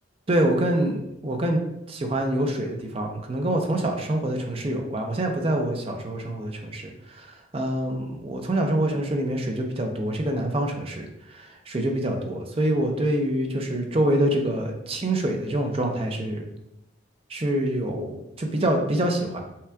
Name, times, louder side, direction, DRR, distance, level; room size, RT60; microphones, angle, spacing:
voice 1, 0.3-1.6 1.9-7.3 7.5-11.1 11.3-16.4 17.3-19.4, right 1 dB, 30° right, 3 dB, 0.5 m, -26 dB
5.7 x 2.3 x 3.4 m, 0.85 s
head